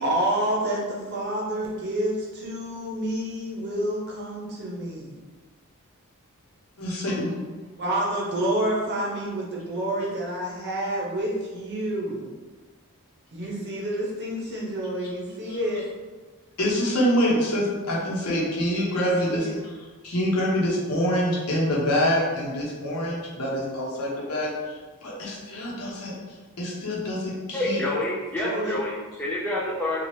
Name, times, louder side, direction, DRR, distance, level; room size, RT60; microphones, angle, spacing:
voice 1, 0.0-5.2 7.8-12.3 13.3-15.8 18.9-19.6 28.4-28.8, right 1 dB, 50° right, -3 dB, 0.7 m, -28 dB
voice 2, 6.8-7.3 15.5-15.6 16.6-19.7 20.0-27.8, equal, 75° left, -5 dB, 0.9 m, -26 dB
voice 3, 27.5-30.0, left 1 dB, 5° left, -6 dB, 0.3 m, -28 dB
2.9 x 2.4 x 3.1 m, 1.3 s
head